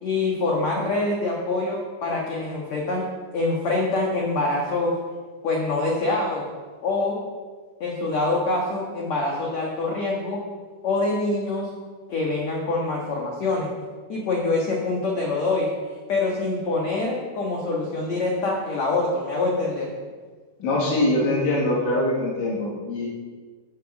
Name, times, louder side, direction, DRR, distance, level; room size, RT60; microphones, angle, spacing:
voice 1, 0.0-5.0 5.4-6.4 6.8-7.3 7.8-10.4 10.8-11.7 12.1-13.7 14.1-15.7 16.1-19.9, left 2 dB, 60° left, -1 dB, 1.9 m, -25 dB
voice 2, 20.6-23.1, left 1 dB, 85° left, -5 dB, 4.9 m, -23 dB
10.0 x 9.0 x 7.3 m, 1.5 s
omnidirectional pair, 5.2 m